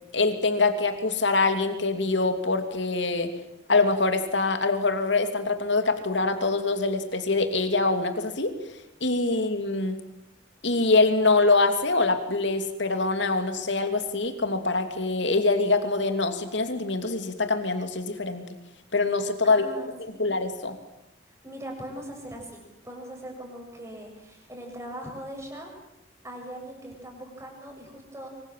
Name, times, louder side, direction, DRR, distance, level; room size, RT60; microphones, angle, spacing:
voice 1, 0.1-3.3 3.7-8.5 9.0-10.0 10.6-18.5 18.9-19.6 20.2-20.8, left 3 dB, 70° left, 7 dB, 3.0 m, -24 dB
voice 2, 19.4-20.2 21.3-25.7 26.2-28.3, right 1 dB, 15° right, 1 dB, 7.1 m, -40 dB
25.5 x 25.0 x 7.6 m, 0.86 s
head